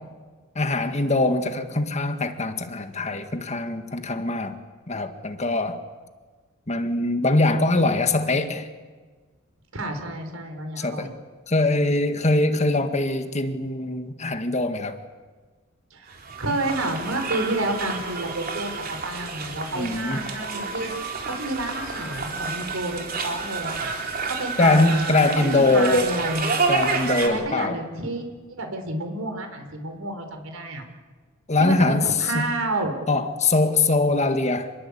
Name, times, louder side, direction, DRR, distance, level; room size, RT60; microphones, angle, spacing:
voice 1, 0.6-4.6 4.9-5.8 6.7-8.7 10.8-11.1 11.5-15.0 19.7-20.2 24.6-26.2 26.7-27.8 31.5-32.4 33.1-34.7, left 2 dB, 35° left, 8 dB, 1.7 m, -22 dB
voice 2, 9.7-11.1 15.9-20.9 21.2-23.9 24.3-26.5 27.2-28.2 28.5-30.8 31.6-33.0, right 2 dB, 85° right, 6 dB, 4.6 m, -30 dB
sound 1, 16.1-27.3, right 4 dB, 45° right, 3.8 m, -30 dB
28.0 x 21.0 x 8.5 m, 1.4 s
head